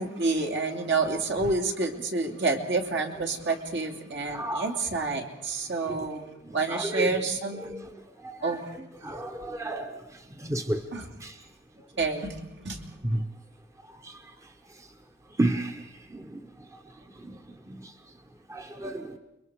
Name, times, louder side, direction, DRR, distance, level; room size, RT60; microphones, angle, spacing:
voice 1, 0.0-6.2 6.5-7.9 8.4-8.6 10.9-11.1 12.0-12.8, right 3 dB, 65° right, 2.7 m, -29 dB
voice 2, 4.3-4.7 5.8-5.9 6.4-7.2 7.6-7.9 8.2-10.8 11.2-11.4 13.0-13.3 14.0-14.3 14.8-14.9 15.4-16.8 17.2-17.9 18.5-19.2, right 1 dB, 15° right, 1.0 m, -33 dB
29.5 x 22.5 x 4.9 m
head